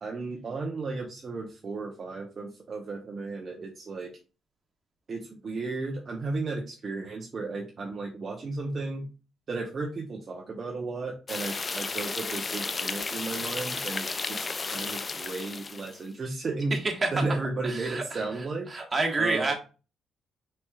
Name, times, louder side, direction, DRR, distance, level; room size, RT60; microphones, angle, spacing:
voice 1, 0.0-4.1 5.1-9.1 9.5-16.8 17.1-18.7 19.2-19.5, right 3 dB, 40° right, 1 dB, 0.8 m, -34 dB
sound 1, 11.3-16.0, left 4 dB, 30° left, 0.3 m, -33 dB
voice 2, 16.7-17.3 17.6-18.2 18.7-19.5, right 3 dB, 25° right, 1 dB, 1.5 m, -28 dB
4.3 x 4.3 x 2.4 m, 0.33 s
cardioid pair, 90°, 0 cm